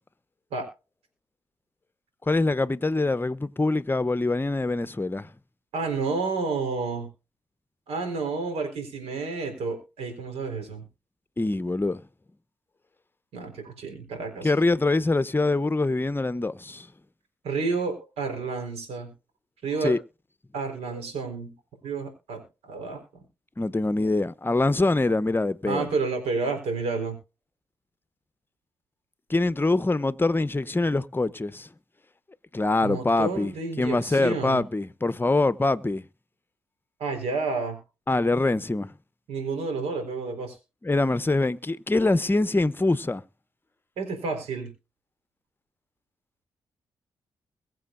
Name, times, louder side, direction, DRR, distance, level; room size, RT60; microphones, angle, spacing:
voice 1, 2.2-5.3 11.4-12.0 14.4-16.9 19.8-20.0 23.6-25.9 29.3-31.7 32.5-36.0 38.1-38.9 40.8-43.2, left 2 dB, 20° left, 0.8 m, -24 dB
voice 2, 5.7-7.1 7.9-10.8 13.3-14.5 17.4-19.1 19.6-19.9 20.5-21.5 21.8-23.2 25.6-27.2 32.8-34.6 37.0-37.8 39.3-40.6 44.0-44.7, right 4 dB, 75° right, 4.1 m, -30 dB
22.5 x 7.7 x 2.5 m
hypercardioid pair, 45°, 11 cm